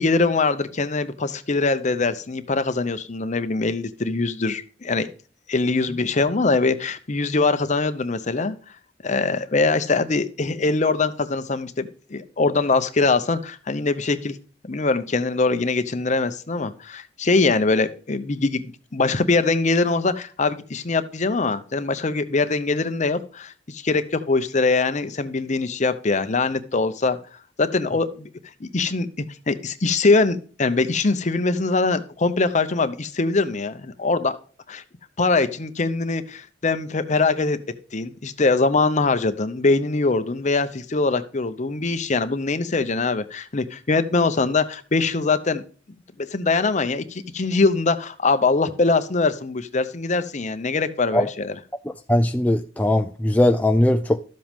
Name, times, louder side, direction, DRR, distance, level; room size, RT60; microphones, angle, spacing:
voice 1, 0.0-5.1 5.5-8.6 9.0-14.4 14.7-27.2 27.6-28.3 28.6-34.4 34.7-34.8 35.2-37.6 37.9-45.6 46.3-51.6, left 3 dB, 40° left, 0.7 m, -22 dB
voice 2, 52.1-54.2, left 1 dB, 10° left, 0.4 m, -19 dB
12.5 x 7.7 x 3.6 m
head